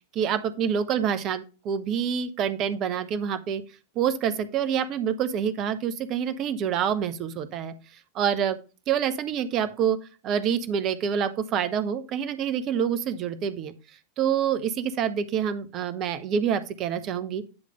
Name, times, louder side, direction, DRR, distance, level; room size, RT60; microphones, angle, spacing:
voice 1, 0.1-3.6 3.9-7.7 8.1-8.6 8.9-10.0 10.2-13.7 14.2-17.5, right 8 dB, 35° right, 12 dB, 0.7 m, -27 dB
9.6 x 3.3 x 5.0 m, 0.33 s
figure-of-eight pair, 90°, 0 cm